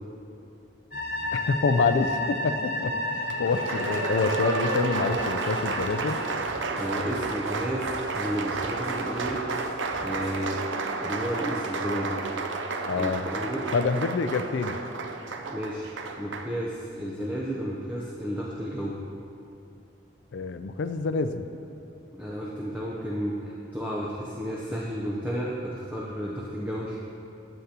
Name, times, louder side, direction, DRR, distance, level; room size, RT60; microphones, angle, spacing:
sound 1, 0.9-6.4, left 1 dB, 45° left, 1.0 m, -32 dB
voice 1, 1.3-6.2 12.9-13.3 13.7-14.8 20.3-21.5, left 4 dB, 70° left, 9 dB, 0.4 m, -27 dB
Applause, 3.3-16.5, right 3 dB, 75° right, 0.5 m, -31 dB
sound 2, 5.2-10.4, equal, 35° right, 1.3 m, -48 dB
voice 2, 6.8-7.9 8.1-9.4 10.0-10.6 11.0-12.2 13.0-13.7 15.5-15.9 16.2-19.0 22.1-27.0, equal, 10° right, -5 dB, 0.6 m, -32 dB
9.5 x 8.1 x 2.8 m, 2.6 s
head